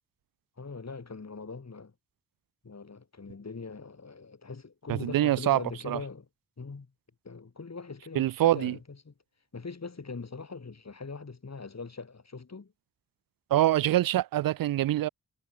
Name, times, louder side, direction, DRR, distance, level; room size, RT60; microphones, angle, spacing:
voice 1, 0.6-1.9 2.6-6.3 6.6-6.9 7.2-9.1 9.5-12.7, left 4 dB, 50° left, 6.9 m, -41 dB
voice 2, 4.9-5.6 5.9-6.0 8.2-8.7 13.5-15.1, right 14 dB, 85° right, 0.5 m, -25 dB
cardioid pair, 45°, 34 cm